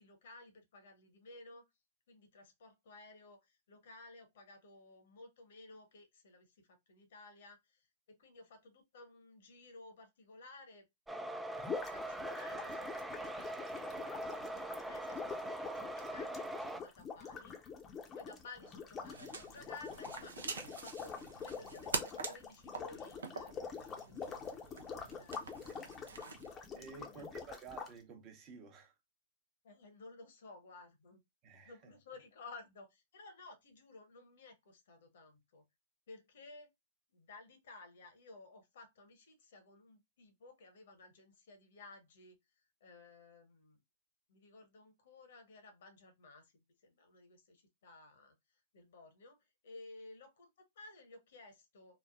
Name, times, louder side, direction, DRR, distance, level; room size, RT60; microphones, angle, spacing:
voice 1, 0.0-1.6 2.1-10.8 11.4-17.6 18.1-25.6 26.7-27.3 29.6-31.2 31.6-35.6 36.1-36.7 37.1-42.4 42.8-43.8 44.3-46.5 46.8-48.3 48.7-49.4 49.6-52.0, left 3 dB, 65° left, 1.0 m, -56 dB
sound 1, 11.1-16.8, right 1 dB, 5° right, 0.3 m, -42 dB
sound 2, 11.6-27.9, left 6 dB, 25° left, 0.6 m, -46 dB
sound 3, 19.0-26.5, right 4 dB, 75° right, 0.6 m, -45 dB
voice 2, 26.6-29.0 31.4-31.9, right 5 dB, 35° right, 0.9 m, -52 dB
3.2 x 2.0 x 2.3 m
hypercardioid pair, 110°, 0 cm